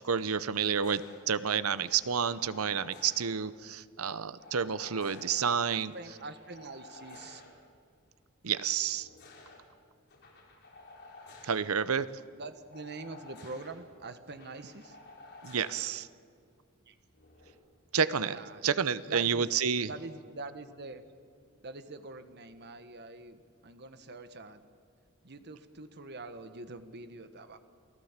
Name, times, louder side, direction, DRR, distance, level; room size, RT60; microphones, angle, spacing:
voice 1, 0.0-5.9 8.4-9.1 11.4-12.1 15.4-16.1 17.9-19.9, right 7 dB, 80° right, 15 dB, 0.8 m, -30 dB
sound 1, 0.8-1.2 1.7-3.3 4.4-5.4 5.9-7.5 8.8-9.6 10.1-11.6 12.7-13.7 14.3-15.8 17.1-17.5, left 3 dB, 50° left, 5.4 m, -52 dB
voice 2, 5.3-7.4 12.3-15.0 16.9-17.0 18.2-19.5 19.8-21.0 21.6-24.6 25.2-27.6, right 3 dB, 50° right, 9 dB, 1.4 m, -45 dB
28.5 x 18.0 x 7.4 m, 2.3 s
head